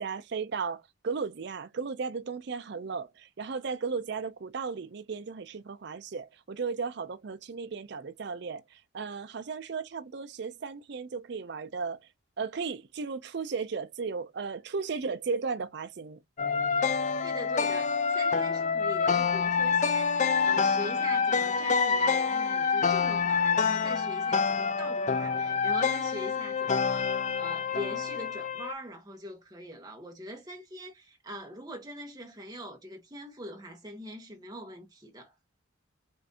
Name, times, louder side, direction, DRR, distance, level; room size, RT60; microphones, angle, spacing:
voice 1, 0.0-12.0 12.4-16.2, right 5 dB, 55° right, 0.4 m, -35 dB
sound 1, 16.4-28.7, left 5 dB, 35° left, 0.4 m, -27 dB
voice 2, 17.2-35.3, equal, 20° right, 1.1 m, -43 dB
5.8 x 2.5 x 2.7 m
head